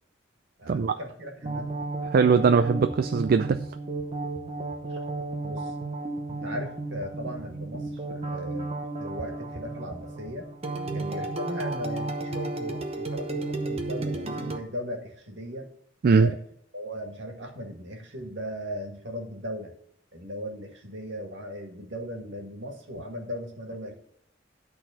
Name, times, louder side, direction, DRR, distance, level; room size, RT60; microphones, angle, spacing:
voice 1, 0.6-1.7 4.9-5.0 5.4-5.7 6.3-8.7 9.0-10.5 10.9-15.7 16.2-16.4 16.7-19.7 20.1-24.0, equal, 70° right, 2 dB, 2.0 m, -37 dB
sound 1, 1.4-14.6, right 2 dB, 35° right, 0.9 m, -33 dB
voice 2, 2.1-3.6 16.0-16.3, right 5 dB, 50° right, 9 dB, 0.4 m, -20 dB
11.5 x 4.1 x 5.7 m, 0.68 s
head